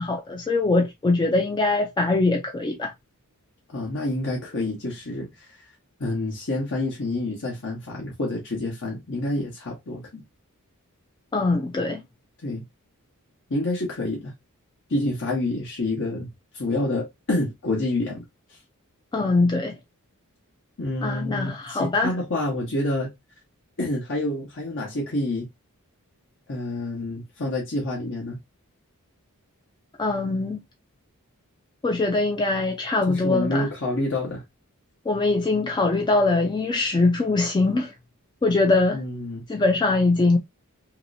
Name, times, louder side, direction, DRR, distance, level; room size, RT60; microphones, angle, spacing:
voice 1, 0.0-2.9 11.3-12.0 19.1-19.7 21.0-22.1 30.0-30.6 31.8-33.7 35.1-37.9 38.4-39.0 39.5-40.4, left 3 dB, 20° left, 0.3 m, -22 dB
voice 2, 3.7-5.6 6.0-10.2 12.4-12.6 13.5-14.3 14.9-16.3 16.5-18.2 18.5-18.6 20.8-23.1 23.8-25.5 26.5-28.4 33.1-34.4 38.9-39.4, left 2 dB, 60° left, 1.0 m, -28 dB
3.0 x 2.9 x 2.6 m
head